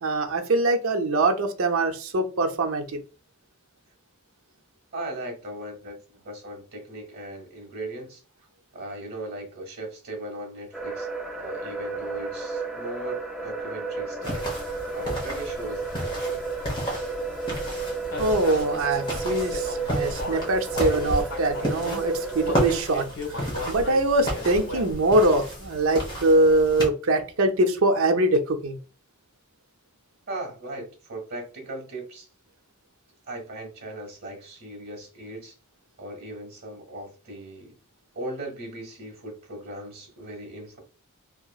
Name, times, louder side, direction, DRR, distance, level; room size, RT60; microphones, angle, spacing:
voice 1, 0.0-3.0 18.2-23.0 23.3-28.8, right 2 dB, 65° right, 5 dB, 0.6 m, -23 dB
voice 2, 4.9-8.2 8.7-11.1 11.3-14.5 14.9-16.4 30.3-32.3 33.3-35.5 36.0-37.7 38.1-40.8, right 1 dB, 45° right, 3 dB, 1.5 m, -38 dB
sound 1, 10.7-22.8, right 4 dB, ahead, 0.4 m, -32 dB
sound 2, 14.2-26.9, equal, 20° left, 1.0 m, -33 dB
Human voice, 18.1-22.0 22.4-25.1, left 1 dB, 65° left, 1.1 m, -35 dB
2.9 x 2.8 x 2.3 m, 0.35 s
head